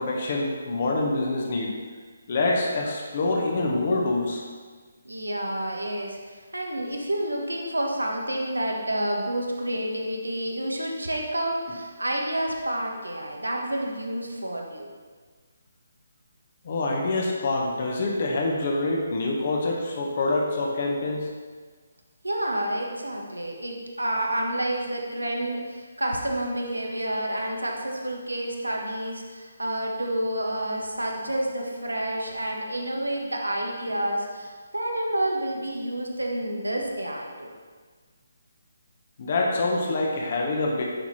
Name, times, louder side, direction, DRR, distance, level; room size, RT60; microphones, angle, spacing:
voice 1, 0.0-1.7 2.3-4.4 16.6-21.3 39.2-40.8, left 2 dB, 40° left, -1 dB, 1.5 m, -26 dB
voice 2, 5.0-14.9 22.2-37.5, right 1 dB, 80° right, 0 dB, 1.7 m, -29 dB
10.0 x 6.1 x 4.5 m, 1.5 s
figure-of-eight pair, 145°, 0 cm